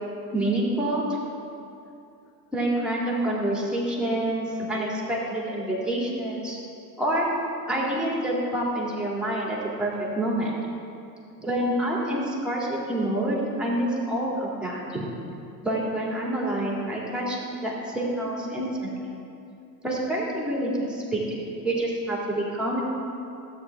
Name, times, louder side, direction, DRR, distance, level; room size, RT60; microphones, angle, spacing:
voice 1, 0.3-1.0 2.5-6.6 7.0-7.3 7.7-10.5 11.4-15.0 15.6-19.1 19.8-22.8, right 1 dB, ahead, -4 dB, 2.6 m, -27 dB
13.0 x 9.2 x 3.5 m, 2.6 s
hypercardioid pair, 95°, 49 cm